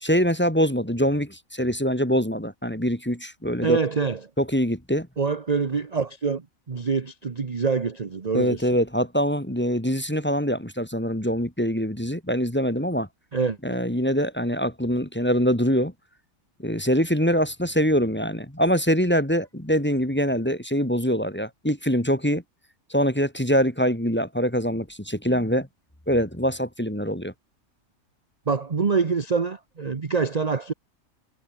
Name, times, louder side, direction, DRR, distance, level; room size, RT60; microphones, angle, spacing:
voice 1, 0.0-3.8 4.4-5.1 8.3-13.1 13.6-15.9 16.6-22.4 22.9-25.7 26.1-27.3, equal, 10° left, 1.9 m, -24 dB
voice 2, 3.6-4.2 5.2-8.7 13.3-13.8 28.5-30.7, right 5 dB, 30° right, 1.0 m, -25 dB
omnidirectional pair, 1.5 m